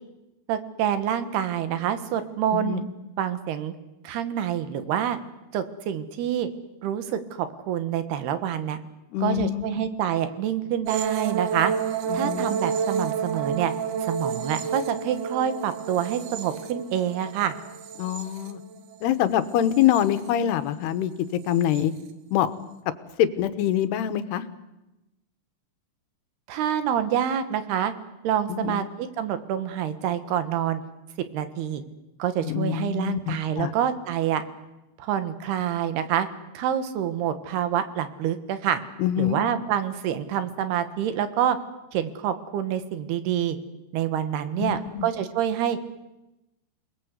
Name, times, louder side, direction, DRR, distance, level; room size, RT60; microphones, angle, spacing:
voice 1, 0.5-2.8 3.2-3.7 4.0-5.2 5.5-6.5 6.8-8.8 9.2-11.7 12.1-13.7 14.0-17.5 26.5-27.9 28.2-30.8 31.3-31.8 32.2-34.4 35.0-36.3 36.5-38.8 39.2-41.6 41.9-43.6 43.9-45.8, right 10 dB, 80° right, 11 dB, 3.4 m, -27 dB
voice 2, 2.5-2.8 9.1-9.8 12.1-12.5 18.0-18.6 19.0-21.1 21.5-21.9 22.3-22.5 23.2-24.4 28.5-28.9 32.4-33.7 39.0-39.4 44.6-45.1, left 11 dB, 85° left, 12 dB, 3.2 m, -25 dB
sound 1, 10.9-19.0 19.4-20.3 21.5-21.8, right 7 dB, 65° right, 2.6 m, -30 dB
28.0 x 20.0 x 8.1 m, 0.99 s
omnidirectional pair, 4.6 m